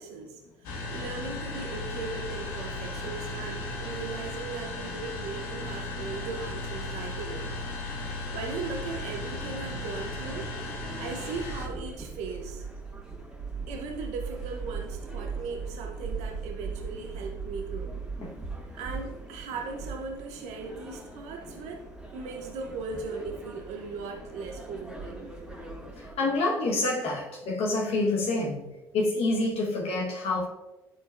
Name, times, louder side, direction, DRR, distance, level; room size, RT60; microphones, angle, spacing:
voice 1, 0.0-7.5 8.3-10.5 11.0-12.7 13.7-17.9 18.7-21.8 22.1-25.4, right 4 dB, 70° right, 2 dB, 0.7 m, -38 dB
sound 1, 0.6-11.7, left 2 dB, 80° left, 1.1 m, -36 dB
sound 2, 8.6-26.2, right 4 dB, 5° right, 1.6 m, -40 dB
voice 2, 26.0-28.6 28.9-30.5, left 2 dB, 55° left, -1 dB, 1.1 m, -27 dB
10.5 x 4.2 x 2.4 m, 1.1 s
hypercardioid pair, 65°, 12 cm